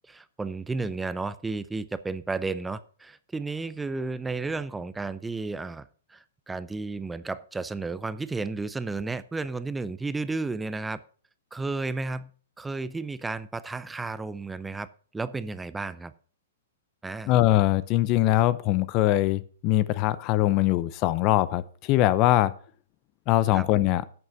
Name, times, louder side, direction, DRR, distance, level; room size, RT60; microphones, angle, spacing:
voice 1, 0.1-11.0 11.5-12.3 12.6-14.9 15.1-16.1 17.0-17.3 23.5-23.7, right 3 dB, 10° right, 0.5 m, -33 dB
voice 2, 17.3-22.5 23.3-24.0, left 15 dB, 35° left, 0.7 m, -22 dB
11.0 x 6.8 x 5.8 m
figure-of-eight pair, 115°, 0 cm